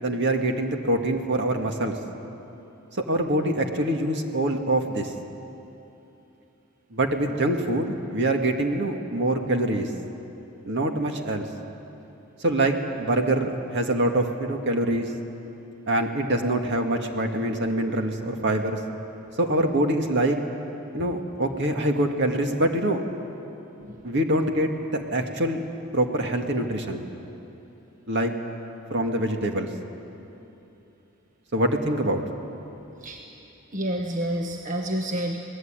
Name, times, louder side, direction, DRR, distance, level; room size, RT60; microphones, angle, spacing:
voice 1, 0.0-2.0 3.1-5.1 6.9-9.9 10.7-11.5 12.4-15.1 15.9-18.8 19.4-20.4 20.9-23.0 24.0-25.6 25.9-27.0 28.1-28.3 28.9-29.7 31.5-32.2, right 1 dB, 55° right, 4 dB, 2.0 m, -24 dB
voice 2, 33.7-35.4, right 1 dB, 35° right, 1 dB, 1.3 m, -29 dB
26.5 x 19.0 x 9.0 m, 2.9 s
head